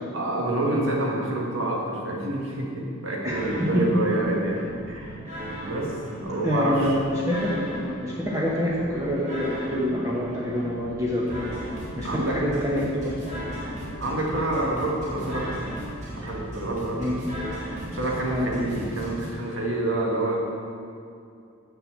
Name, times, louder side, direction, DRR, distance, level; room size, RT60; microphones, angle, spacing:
voice 1, 0.1-5.2 5.6-7.0 12.0-12.4 14.0-15.5 16.2-17.1 17.9-20.4, right 1 dB, 70° right, -1 dB, 1.7 m, -27 dB
sound 1, 3.3-19.3, equal, 35° right, 2.7 m, -37 dB
voice 2, 6.4-7.0 7.3-11.4 11.9-13.5 17.0-17.2 18.3-18.5, equal, 15° right, -7 dB, 1.1 m, -26 dB
7.7 x 6.7 x 7.3 m, 2.5 s
head